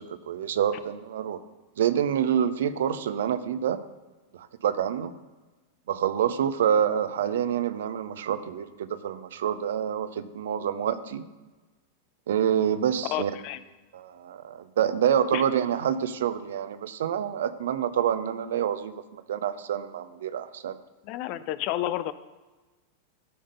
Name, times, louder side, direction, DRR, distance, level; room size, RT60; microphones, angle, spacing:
voice 1, 0.0-1.4 1.8-3.8 4.3-5.1 5.9-11.2 12.3-13.3 13.9-20.8, right 9 dB, 60° right, 12 dB, 0.6 m, -27 dB
voice 2, 13.0-13.6 15.3-15.4 21.0-22.1, left 13 dB, 45° left, 14 dB, 0.5 m, -30 dB
13.0 x 5.1 x 5.3 m, 1.2 s
figure-of-eight pair, 90°, 0 cm